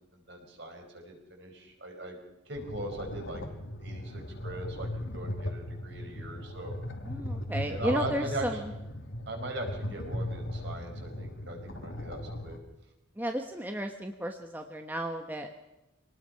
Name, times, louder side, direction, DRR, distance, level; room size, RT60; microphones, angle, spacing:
voice 1, 0.1-2.2 2.5-3.4 3.8-6.8 7.6-8.6 9.2-12.6, right 2 dB, 55° right, 2 dB, 5.1 m, -39 dB
sound 1, 2.6-12.6, left 1 dB, 70° left, 2.4 m, -38 dB
voice 2, 7.0-8.6 13.2-15.6, equal, 10° right, 4 dB, 1.1 m, -33 dB
25.0 x 19.0 x 5.7 m, 0.97 s
head